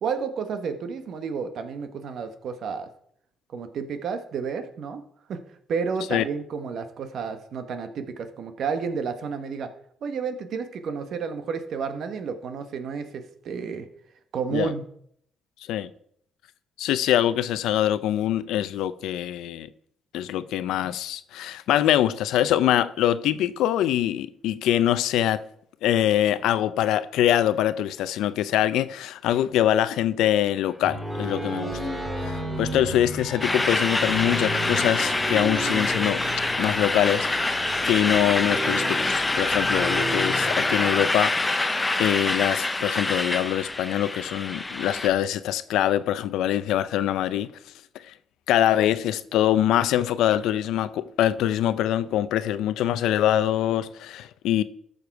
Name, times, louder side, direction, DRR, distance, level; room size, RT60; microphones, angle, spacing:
voice 1, 0.0-2.9 3.5-5.0 5.3-5.4 5.7-9.7 10.0-13.9 14.3-14.8, right 5 dB, 65° right, 1.2 m, -31 dB
voice 2, 16.8-19.7 20.1-25.4 25.8-31.8 32.2-36.2 36.6-47.5 47.9-48.1 48.5-54.6, left 12 dB, 90° left, 0.5 m, -24 dB
sound 1, 30.6-41.4, right 1 dB, 20° right, 2.4 m, -32 dB
sound 2, 33.4-45.1, left 2 dB, 15° left, 0.8 m, -26 dB
13.5 x 6.6 x 4.6 m
cardioid pair, 90°, 0 cm